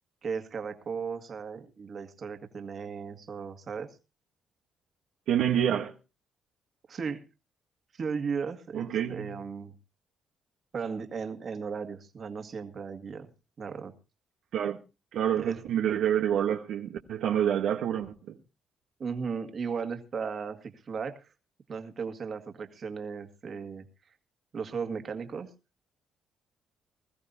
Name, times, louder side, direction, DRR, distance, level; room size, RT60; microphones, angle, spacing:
voice 1, 0.2-3.9 6.9-7.2 7.9-9.7 10.7-13.3 13.6-14.0 15.4-15.6 19.0-21.3 21.7-23.8 24.5-25.5, right 5 dB, 50° right, 2.0 m, -36 dB
voice 2, 5.3-5.9 8.7-9.3 14.5-14.8 15.1-18.1, right 9 dB, 80° right, 1.2 m, -27 dB
21.5 x 14.0 x 2.7 m
cardioid pair, 90°, 0 cm